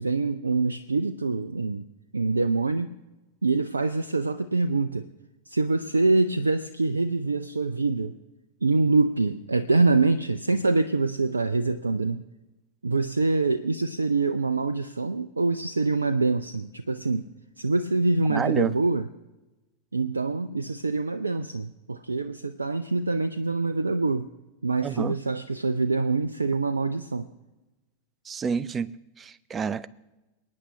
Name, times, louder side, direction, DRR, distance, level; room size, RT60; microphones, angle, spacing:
voice 1, 0.0-1.8 2.1-2.9 3.4-5.1 5.5-8.1 8.6-12.2 12.8-17.3 17.6-19.1 19.9-24.3 24.6-27.3, right 3 dB, 80° right, 0.5 m, -25 dB
voice 2, 18.3-18.8 24.8-25.1 28.3-28.9 29.2-29.9, right 6 dB, 20° right, 0.6 m, -28 dB
28.5 x 9.6 x 3.2 m
figure-of-eight pair, 90°, 0 cm